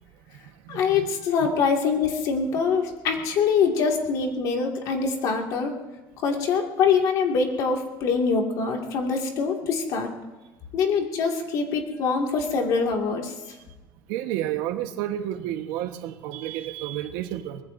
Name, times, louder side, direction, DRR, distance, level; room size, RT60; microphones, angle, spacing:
voice 1, 0.7-5.7 6.2-10.1 10.7-13.4, left 5 dB, 50° left, 2 dB, 2.2 m, -24 dB
voice 2, 14.1-17.6, right 12 dB, 85° right, 6 dB, 1.3 m, -30 dB
24.0 x 20.0 x 2.7 m, 1.2 s
cardioid pair, 170°, 8 cm